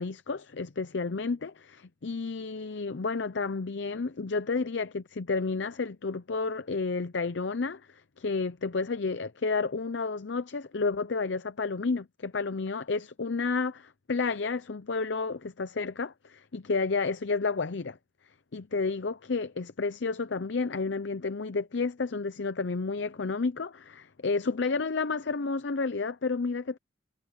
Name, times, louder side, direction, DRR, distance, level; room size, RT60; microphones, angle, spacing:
voice 1, 0.0-18.0 18.5-26.8, left 4 dB, 60° left, 0.6 m, -31 dB
head